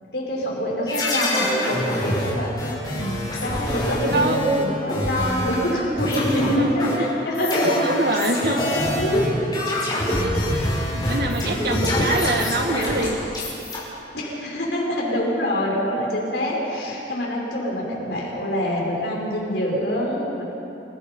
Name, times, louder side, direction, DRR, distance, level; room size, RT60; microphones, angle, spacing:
voice 1, 0.1-10.4 14.1-20.4, equal, 75° left, -3 dB, 5.9 m, -25 dB
sound 1, 0.9-5.7 6.0-13.8, left 1 dB, 25° left, 6.0 m, -25 dB
voice 2, 6.4-7.1 7.8-8.6 10.9-13.2, right 2 dB, 60° right, 4 dB, 1.8 m, -24 dB
29.0 x 17.5 x 5.5 m, 3.0 s
head